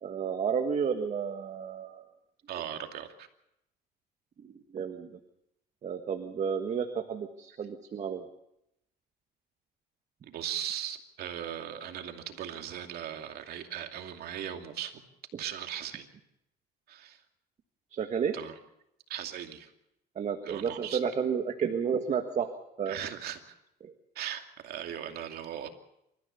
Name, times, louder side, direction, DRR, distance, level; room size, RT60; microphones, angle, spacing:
voice 1, 0.0-2.0 4.4-5.1 5.8-8.3 17.9-18.3 20.1-22.5 22.8-23.0 23.8-23.9, right 7 dB, 45° right, 6 dB, 1.6 m, -31 dB
voice 2, 2.5-3.3 10.2-15.0 15.4-16.1 16.9-17.2 18.3-18.5 19.1-19.7 20.4-21.0 22.9-23.5 24.1-25.7, right 10 dB, 65° right, 5 dB, 2.5 m, -38 dB
28.0 x 14.5 x 6.9 m, 0.82 s
cardioid pair, 110°, 17 cm